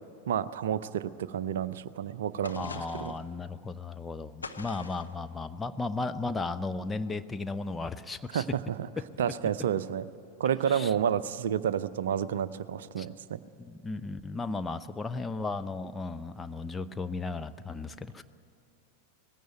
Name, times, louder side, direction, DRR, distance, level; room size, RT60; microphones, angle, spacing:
voice 1, 0.3-3.1 8.3-8.4 9.2-10.1 10.4-13.4, right 9 dB, 60° right, 15 dB, 0.6 m, -30 dB
sound 1, 2.4-3.2 4.4-5.1, left 4 dB, 75° left, 0.9 m, -42 dB
voice 2, 2.5-8.5 9.0-9.1 10.7-10.9 13.0-13.1 13.6-18.2, left 3 dB, 10° left, 9 dB, 0.6 m, -35 dB
19.5 x 16.0 x 9.1 m, 2.5 s
figure-of-eight pair, 90°, 0 cm